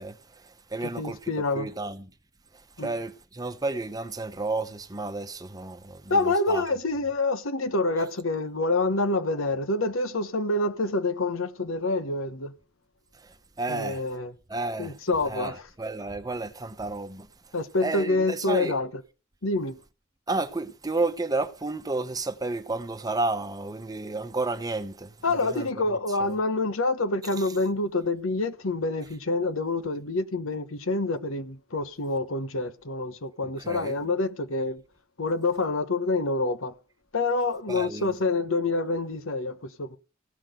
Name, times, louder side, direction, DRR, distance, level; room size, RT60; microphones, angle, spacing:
voice 1, 0.0-2.1 2.5-6.6 13.2-14.0 14.5-15.0 15.3-17.3 17.8-18.7 20.3-26.4 27.4-27.5 33.6-34.0 37.7-38.2, right 3 dB, 20° right, 1.0 m, -32 dB
voice 2, 1.0-1.7 2.8-2.9 6.1-12.5 13.7-14.3 14.8-15.6 17.5-18.9 19.4-19.8 25.2-34.8 35.2-36.7 37.1-40.0, left 2 dB, 80° left, 1.1 m, -27 dB
15.5 x 6.1 x 7.8 m
head